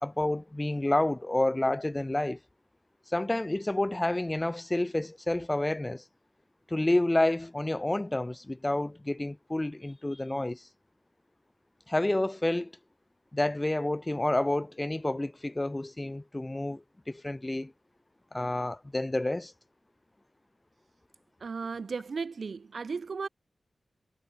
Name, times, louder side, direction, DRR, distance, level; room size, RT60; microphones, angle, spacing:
voice 1, 0.0-2.4 3.1-6.0 6.7-10.7 11.9-12.7 13.3-17.7 18.3-19.5, left 1 dB, 15° left, 1.3 m, -29 dB
voice 2, 21.4-23.3, right 5 dB, 55° right, 4.8 m, -35 dB
wide cardioid pair, 160°, 0 cm